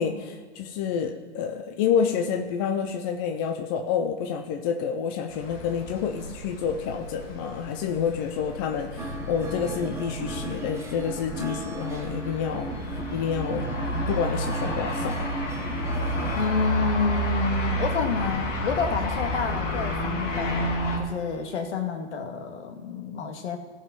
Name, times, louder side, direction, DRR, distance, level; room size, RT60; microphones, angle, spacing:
voice 1, 0.0-13.7 14.1-15.2, left 7 dB, 20° left, 5 dB, 0.4 m, -28 dB
sound 1, 5.3-21.0, equal, 80° left, 2.1 m, -31 dB
sound 2, 9.0-16.5, right 3 dB, 5° right, 1.1 m, -35 dB
voice 2, 16.3-23.6, left 5 dB, 65° left, 5 dB, 1.8 m, -29 dB
15.0 x 5.5 x 5.2 m, 1.5 s
hypercardioid pair, 130°, 37 cm